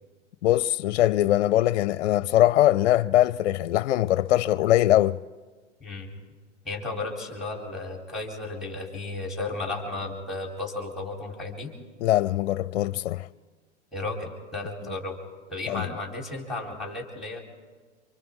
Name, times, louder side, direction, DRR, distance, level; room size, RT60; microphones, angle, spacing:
voice 1, 0.4-5.2 12.0-13.3 15.7-15.9, left 13 dB, 65° left, 0.5 m, -22 dB
voice 2, 6.6-11.7 13.9-15.2 15.5-17.4, left 2 dB, ahead, 4.1 m, -34 dB
27.5 x 25.0 x 3.8 m
hypercardioid pair, 115°, 36 cm